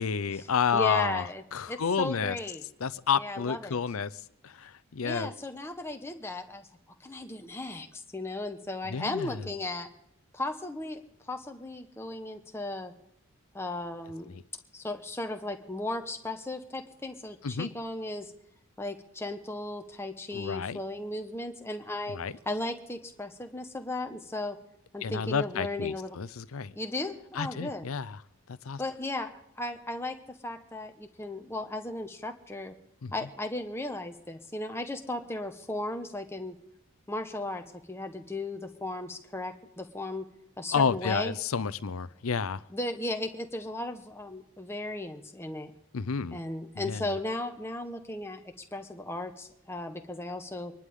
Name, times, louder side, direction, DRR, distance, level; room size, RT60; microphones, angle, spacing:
voice 1, 0.0-2.4 2.8-5.3 8.9-9.5 14.3-14.4 17.4-17.7 20.3-20.8 22.1-22.3 25.0-26.7 27.3-28.2 28.5-28.8 33.0-33.1 40.7-42.6 45.9-46.4 46.7-47.1, left 6 dB, 80° left, 0.6 m, -30 dB
voice 2, 0.7-2.6 3.1-3.8 5.0-6.7 7.0-9.9 10.3-11.0 11.3-12.9 13.5-14.3 14.7-18.3 18.8-22.2 22.4-24.6 24.9-26.2 26.7-27.9 28.8-30.2 30.4-32.7 33.1-36.6 37.1-40.2 40.6-41.3 42.7-45.7 46.3-50.7, left 2 dB, 10° left, 1.1 m, -36 dB
25.5 x 11.5 x 3.7 m
head